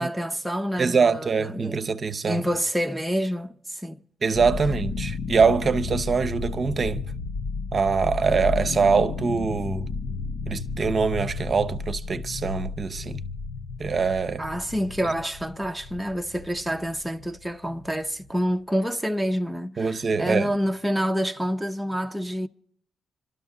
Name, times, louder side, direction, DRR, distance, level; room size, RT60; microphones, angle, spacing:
voice 1, 0.0-1.8 2.3-4.0 14.4-22.5, equal, 5° right, 0.5 m, -28 dB
voice 2, 0.8-2.4 4.2-7.0 7.7-9.9 10.5-13.2 13.8-14.4 19.8-20.5, right 5 dB, 40° right, 0.6 m, -23 dB
sound 1, 4.3-18.3, left 4 dB, 70° left, 0.6 m, -33 dB
26.0 x 12.5 x 3.7 m
cardioid pair, 115°, 0 cm